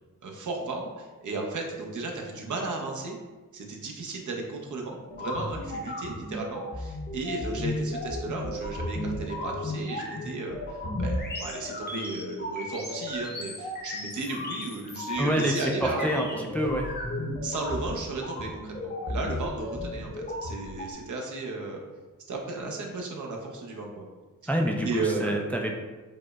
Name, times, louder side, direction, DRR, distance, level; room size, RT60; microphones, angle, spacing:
voice 1, 0.2-3.2 3.5-16.4 17.4-21.8 22.3-24.0 24.8-25.4, right 3 dB, 60° right, 0 dB, 0.8 m, -34 dB
sound 1, 5.1-20.9, left 1 dB, 30° left, 0.7 m, -34 dB
voice 2, 15.2-15.6 16.0-16.9 24.5-25.8, equal, 5° left, 1 dB, 0.4 m, -27 dB
5.1 x 2.0 x 2.3 m, 1.2 s
cardioid pair, 50°, 33 cm